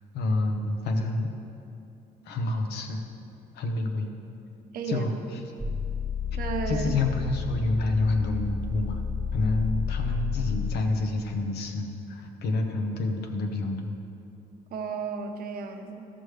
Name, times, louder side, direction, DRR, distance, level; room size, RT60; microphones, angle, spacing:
voice 1, 0.1-1.3 2.2-3.0 3.5-4.1 4.9-5.4 6.7-9.0 9.3-13.9, left 2 dB, 80° left, 4 dB, 1.0 m, -28 dB
sound 1, 5.6-10.8, left 5 dB, 5° right, 0.7 m, -31 dB
voice 2, 6.4-7.0 14.7-16.1, right 5 dB, 60° right, 5 dB, 0.8 m, -33 dB
12.5 x 6.3 x 3.3 m, 2.6 s
cardioid pair, 110°, 17 cm